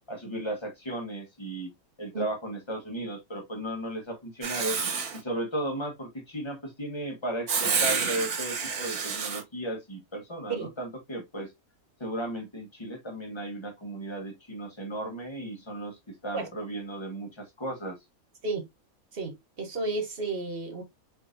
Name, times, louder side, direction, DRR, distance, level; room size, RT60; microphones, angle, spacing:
voice 1, 0.1-1.7 2.0-4.8 5.1-11.5 12.0-18.0, right 1 dB, 20° left, 1.3 m, -35 dB
Writing, 4.4-5.2 7.5-9.4, right 5 dB, 85° right, 1.6 m, -29 dB
voice 2, 19.1-20.8, right 3 dB, 45° right, 1.2 m, -32 dB
4.9 x 3.3 x 2.6 m
omnidirectional pair, 1.5 m